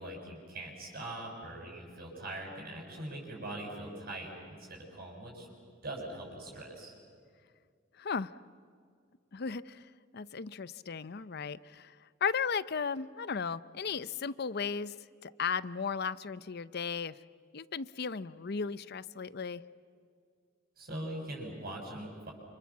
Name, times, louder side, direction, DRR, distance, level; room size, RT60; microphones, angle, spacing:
voice 1, 0.0-5.5 5.8-6.9 20.8-22.3, right 1 dB, 50° right, 0 dB, 7.1 m, -42 dB
voice 2, 8.0-8.3 9.3-9.9 10.1-11.9 12.2-14.9 15.2-17.1 17.5-19.6, left 6 dB, 55° left, 17 dB, 0.7 m, -35 dB
28.5 x 28.0 x 7.3 m, 2.2 s
head